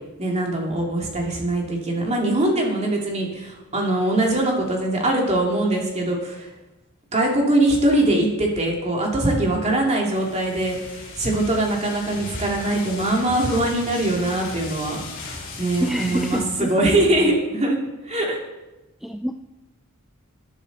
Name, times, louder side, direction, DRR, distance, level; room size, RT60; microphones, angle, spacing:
voice 1, 0.2-6.5 7.1-15.0 15.3-17.8 18.0-18.4, right 1 dB, 30° right, 0 dB, 2.6 m, -22 dB
sound 1, 10.1-16.4, left 3 dB, 60° left, 3.6 m, -36 dB
voice 2, 12.7-13.0 15.8-17.4 19.0-19.3, equal, ahead, 5 dB, 0.4 m, -28 dB
13.5 x 10.0 x 4.1 m, 1.0 s
head